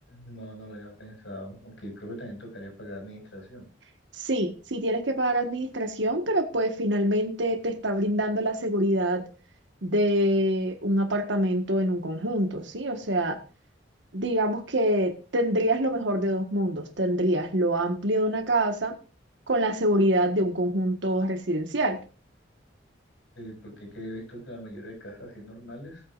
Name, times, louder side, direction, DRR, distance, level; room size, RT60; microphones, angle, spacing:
voice 1, 0.1-3.7 23.3-26.0, equal, 80° left, 1 dB, 6.8 m, -41 dB
voice 2, 4.2-9.3 9.8-13.4 14.1-18.9 19.5-22.0, right 1 dB, 70° right, 7 dB, 1.6 m, -25 dB
18.5 x 8.2 x 2.6 m, 0.36 s
head